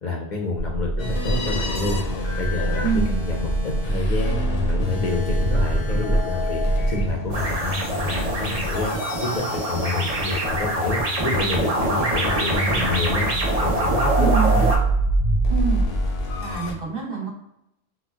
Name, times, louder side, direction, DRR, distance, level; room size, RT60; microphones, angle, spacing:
voice 1, 0.0-2.0 2.4-6.6 6.9-7.6 8.1-8.9 9.2-13.3 13.6-14.0 14.4-14.7, left 2 dB, 55° left, -1 dB, 0.6 m, -28 dB
sound 1, 0.6-7.1, right 2 dB, 20° right, 0.4 m, -25 dB
sound 2, 1.0-16.7, right 1 dB, 80° left, 0.9 m, -27 dB
voice 2, 2.8-3.2 14.2-14.7 15.5-15.8 16.4-17.3, right 5 dB, 65° right, -2 dB, 1.1 m, -26 dB
sound 3, 7.3-14.8, right 1 dB, 40° right, 0.7 m, -25 dB
3.9 x 2.1 x 2.3 m, 0.83 s
omnidirectional pair, 1.0 m